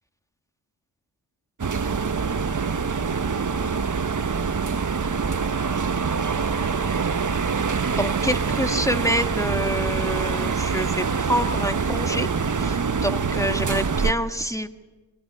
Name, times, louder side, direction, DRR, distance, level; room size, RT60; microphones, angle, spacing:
sound 1, 1.6-14.1, right 5 dB, 40° right, 1.3 m, -25 dB
voice 1, 8.0-12.3 12.5-14.7, equal, 5° left, 8 dB, 1.7 m, -27 dB
27.5 x 16.5 x 9.6 m, 1.2 s
cardioid pair, 45°, 47 cm